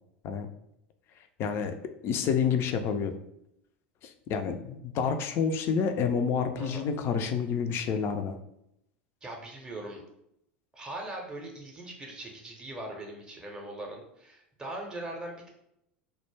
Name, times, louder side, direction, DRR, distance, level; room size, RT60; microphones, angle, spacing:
voice 1, 1.4-1.8 2.0-3.1 4.0-8.4, left 6 dB, 40° left, 8 dB, 0.3 m, -29 dB
voice 2, 9.2-10.0 10.7-15.5, right 1 dB, 10° right, 0 dB, 0.6 m, -40 dB
2.2 x 2.0 x 3.1 m, 0.79 s
figure-of-eight pair, 80°, 6 cm